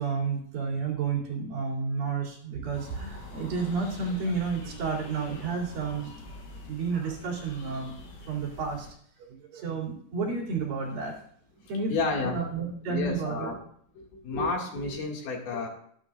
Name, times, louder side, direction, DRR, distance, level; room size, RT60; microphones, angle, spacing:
voice 1, 0.0-6.3 6.6-7.9 8.2-8.9 9.3-11.1 11.7-11.9 12.2-13.5, right 5 dB, 50° right, -2 dB, 4.4 m, -31 dB
sound 1, 2.7-8.9, left 3 dB, 85° left, 6.1 m, -45 dB
voice 2, 11.6-12.4 12.9-13.6 14.0-15.7, left 3 dB, 55° left, 0 dB, 3.6 m, -31 dB
19.0 x 11.0 x 2.6 m, 0.63 s
omnidirectional pair, 5.9 m